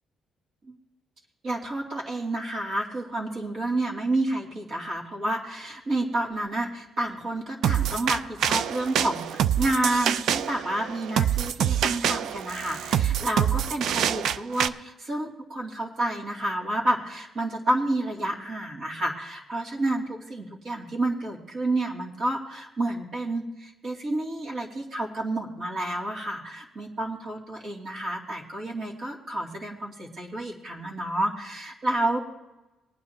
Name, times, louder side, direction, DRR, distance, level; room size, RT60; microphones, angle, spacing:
voice 1, 1.4-32.2, right 1 dB, 60° right, -3 dB, 2.7 m, -30 dB
sound 1, 7.6-14.7, right 9 dB, 75° right, 0.4 m, -26 dB
19.5 x 9.7 x 2.9 m, 1.0 s
cardioid pair, 90°, 0 cm